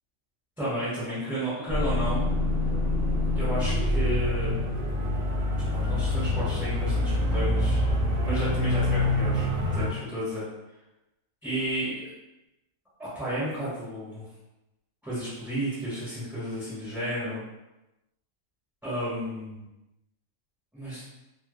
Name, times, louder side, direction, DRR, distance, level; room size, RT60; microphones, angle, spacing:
voice 1, 0.6-2.3 3.3-4.6 5.7-7.8 8.2-10.4 11.4-12.1 13.0-14.2 15.0-17.4 18.8-19.6 20.7-21.0, right 1 dB, ahead, -12 dB, 1.1 m, -32 dB
sound 1, 1.7-9.9, left 1 dB, 60° right, 0.7 m, -26 dB
2.2 x 2.1 x 3.1 m, 0.96 s
omnidirectional pair, 1.4 m